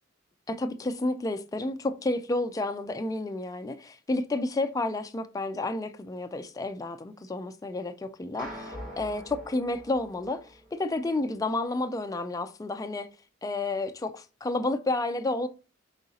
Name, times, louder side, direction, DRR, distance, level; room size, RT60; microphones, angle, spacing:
voice 1, 0.5-13.1 13.4-15.5, left 2 dB, 15° left, 0.3 m, -31 dB
sound 1, 8.4-10.9, equal, 45° right, 2.4 m, -43 dB
4.9 x 3.8 x 2.7 m
head